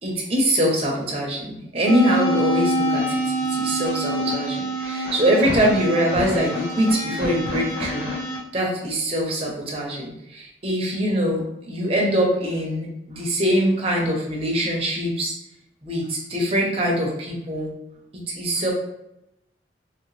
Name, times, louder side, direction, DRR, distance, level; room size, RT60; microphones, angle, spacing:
voice 1, 0.0-3.2 3.5-8.1 8.5-15.3 15.8-17.7 18.1-18.7, equal, 35° right, -2 dB, 0.7 m, -23 dB
sound 1, 1.9-8.4, right 1 dB, 75° left, 0.9 m, -26 dB
2.9 x 2.9 x 3.1 m, 0.85 s
head